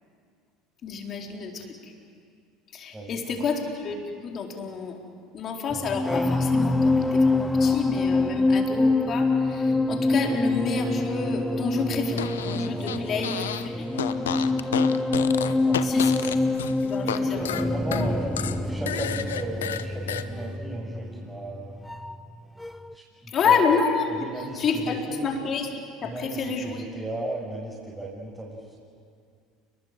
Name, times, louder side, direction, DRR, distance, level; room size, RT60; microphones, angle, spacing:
voice 1, 0.8-1.9 2.7-5.0 5.3-13.9 15.8-16.4 16.8-17.5 23.3-24.1 24.5-25.7 26.0-26.8, left 5 dB, 45° left, 1 dB, 4.3 m, -29 dB
sound 1, 5.7-22.4 22.6-22.9, left 2 dB, 10° left, 1.1 m, -25 dB
Fart, 12.1-13.7 13.9-17.2 17.4-20.2, left 10 dB, 80° left, 0.9 m, -31 dB
voice 2, 12.7-13.2 13.7-14.6 15.5-16.4 17.1-21.8 22.9-23.7 24.0-25.3 26.0-28.7, right 2 dB, 10° right, -5 dB, 6.8 m, -36 dB
29.5 x 21.0 x 7.8 m, 2.3 s
hypercardioid pair, 70°, 0 cm